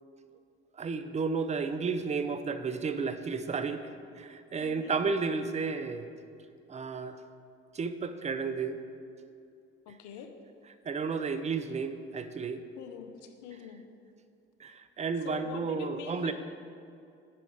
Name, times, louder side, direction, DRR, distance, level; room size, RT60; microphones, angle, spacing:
voice 1, 0.8-6.1 6.7-7.1 7.7-8.8 10.9-12.6 14.6-16.3, right 5 dB, 20° right, 10 dB, 0.4 m, -32 dB
voice 2, 4.6-5.0 9.9-10.3 12.8-13.8 15.2-16.3, left 7 dB, 65° left, 6 dB, 0.7 m, -44 dB
5.9 x 4.9 x 4.9 m, 2.5 s
hypercardioid pair, 60°, 31 cm